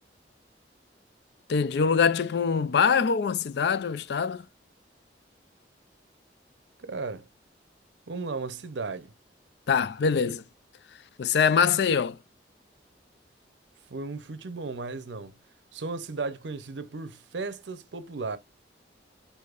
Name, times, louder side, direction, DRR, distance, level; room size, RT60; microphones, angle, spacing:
voice 1, 1.5-4.4 9.7-10.4 11.2-12.2, left 6 dB, 65° left, 0.4 m, -24 dB
voice 2, 6.8-7.3 8.1-9.1 13.9-15.3 15.7-18.4, right 3 dB, 85° right, 0.7 m, -35 dB
6.4 x 2.7 x 2.4 m
head